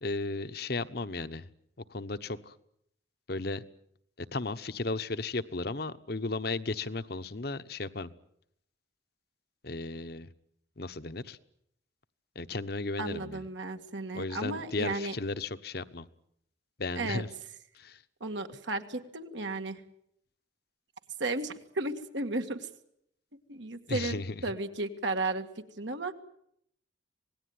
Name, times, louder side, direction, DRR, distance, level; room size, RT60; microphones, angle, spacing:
voice 1, 0.0-1.5 1.9-2.5 3.3-3.6 4.3-8.1 9.6-10.3 10.8-11.4 12.3-13.4 14.1-16.0 16.8-17.3 17.8-18.0 23.9-24.4, left 3 dB, 55° left, 12 dB, 1.1 m, -35 dB
voice 2, 13.0-15.2 17.0-17.2 18.2-19.8 21.2-22.6 23.5-25.5 25.8-26.1, right 2 dB, 75° right, 6 dB, 2.0 m, -34 dB
26.5 x 19.0 x 9.6 m, 0.75 s
head